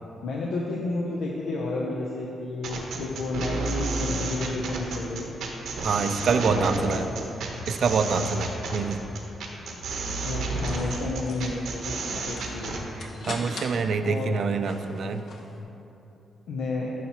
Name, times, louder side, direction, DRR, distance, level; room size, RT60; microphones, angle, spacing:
voice 1, 0.2-5.3 6.3-7.0 8.0-8.4 10.2-12.7 14.0-14.3 16.5-16.9, left 2 dB, 90° left, -3 dB, 0.6 m, -31 dB
sound 1, 2.6-12.8, right 3 dB, 85° right, 0.9 m, -31 dB
voice 2, 5.8-7.1 7.7-9.0 13.3-15.2, right 5 dB, 55° right, 9 dB, 0.4 m, -25 dB
sound 2, 10.3-15.6, left 2 dB, 60° left, 0.8 m, -42 dB
9.5 x 5.7 x 2.9 m, 3.0 s
cardioid pair, 135°, 0 cm